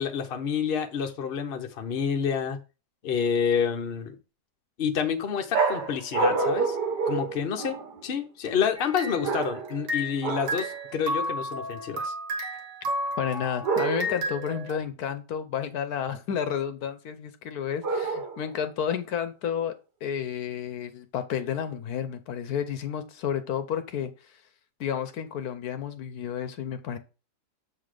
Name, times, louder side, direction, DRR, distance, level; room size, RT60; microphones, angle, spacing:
voice 1, 0.0-2.6 3.0-4.2 4.8-6.8 7.1-7.8 8.0-12.1, left 7 dB, 45° left, 4 dB, 0.9 m, -28 dB
sound 1, 5.5-8.0 9.2-9.8 10.2-10.7 13.6-14.3 17.8-18.6, right 4 dB, 85° right, 1.6 m, -28 dB
sound 2, 8.8-10.2 10.5-14.8, equal, 55° right, 1.7 m, -33 dB
voice 2, 13.2-19.7 20.0-24.1 24.8-27.0, left 8 dB, 70° left, 10 dB, 1.2 m, -31 dB
7.3 x 4.0 x 4.9 m, 0.32 s
omnidirectional pair, 1.7 m